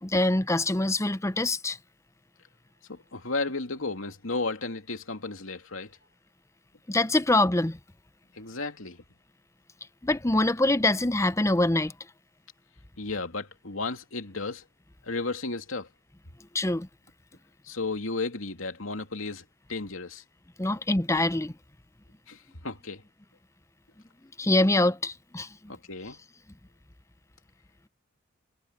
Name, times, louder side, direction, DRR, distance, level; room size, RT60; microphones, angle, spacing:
voice 1, 0.0-1.8 6.9-7.8 10.0-11.9 16.5-16.9 20.6-21.5 24.4-25.5, left 2 dB, 15° left, 0.7 m, -24 dB
voice 2, 2.9-6.0 8.3-9.0 13.0-14.7 15.0-15.9 17.6-20.2 22.3-23.0 25.7-26.2, left 3 dB, 80° left, 2.8 m, -34 dB
head